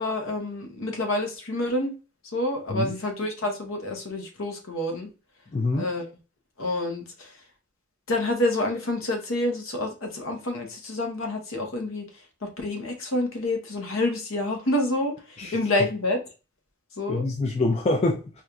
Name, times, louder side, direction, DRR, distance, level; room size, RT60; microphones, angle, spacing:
voice 1, 0.0-1.9 2.2-5.1 5.8-6.1 6.6-7.3 8.1-12.1 12.4-16.2 17.0-17.3, left 1 dB, 65° left, 3 dB, 0.8 m, -28 dB
voice 2, 5.5-5.9 15.4-15.5 17.1-18.4, left 2 dB, 30° left, 2 dB, 0.4 m, -25 dB
4.3 x 2.5 x 2.2 m, 0.32 s
head